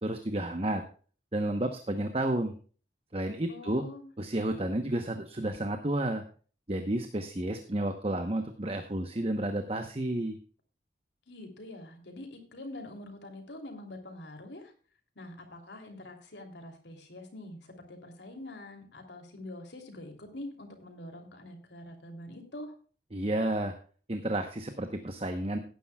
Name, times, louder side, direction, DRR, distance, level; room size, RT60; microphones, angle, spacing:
voice 1, 0.0-0.8 1.3-2.6 3.1-3.8 4.2-6.2 6.7-10.4 23.1-23.7 24.1-25.6, right 1 dB, 35° right, 6 dB, 0.9 m, -31 dB
voice 2, 3.5-4.1 11.3-14.7 15.1-22.7, left 1 dB, 80° left, 4 dB, 3.1 m, -45 dB
17.5 x 10.0 x 2.3 m, 0.40 s
head